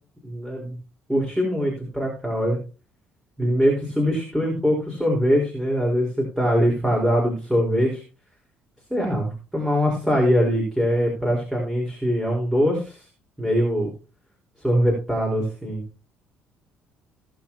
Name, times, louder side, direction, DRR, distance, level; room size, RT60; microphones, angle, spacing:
voice 1, 0.2-0.8 1.1-2.6 3.4-8.0 8.9-13.0 13.4-13.9 14.6-15.8, equal, 5° right, -2 dB, 4.6 m, -22 dB
18.0 x 8.0 x 3.0 m, 0.33 s
figure-of-eight pair, 50°, 6 cm